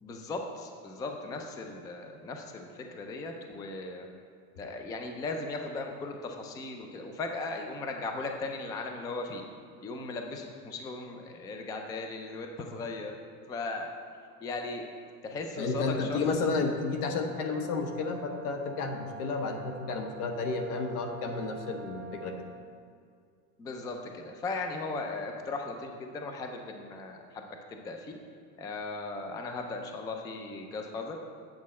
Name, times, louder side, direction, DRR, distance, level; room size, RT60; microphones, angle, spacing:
voice 1, 0.0-4.1 4.6-9.4 9.8-13.2 13.5-13.9 14.4-14.8 15.2-16.2 23.6-28.1 28.6-31.2, left 3 dB, 10° left, 4 dB, 0.3 m, -37 dB
voice 2, 15.6-22.4, left 4 dB, 80° left, 5 dB, 1.2 m, -31 dB
Brass instrument, 16.8-22.7, right 4 dB, 35° right, 1.7 m, -47 dB
8.3 x 7.4 x 4.2 m, 2.2 s
supercardioid pair, 130°, 44 cm